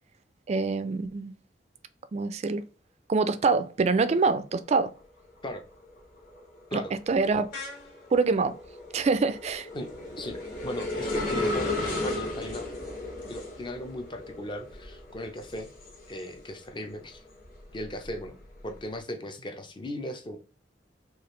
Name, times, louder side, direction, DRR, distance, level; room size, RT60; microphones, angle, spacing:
voice 1, 0.5-1.3 2.1-2.6 3.1-4.9 6.7-7.5 8.1-8.6 8.9-9.7, right 4 dB, 40° right, 0.3 m, -25 dB
sound 1, 4.6-5.0 5.4-16.7 17.1-18.8, left 2 dB, 50° left, 1.5 m, -35 dB
voice 2, 9.7-12.7 13.3-15.7 16.1-17.2 17.7-18.4 18.6-20.4, left 1 dB, 25° left, 0.6 m, -37 dB
4.8 x 2.4 x 3.1 m
head